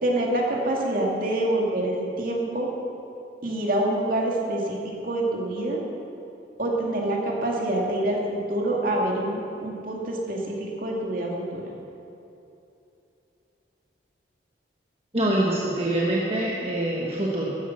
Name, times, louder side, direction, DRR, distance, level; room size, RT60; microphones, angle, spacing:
voice 1, 0.0-2.7 3.4-5.8 6.6-11.6, right 1 dB, 50° right, -1 dB, 2.3 m, -26 dB
voice 2, 15.1-17.6, right 1 dB, 35° right, -4 dB, 1.4 m, -25 dB
14.0 x 10.5 x 6.2 m, 2.8 s
head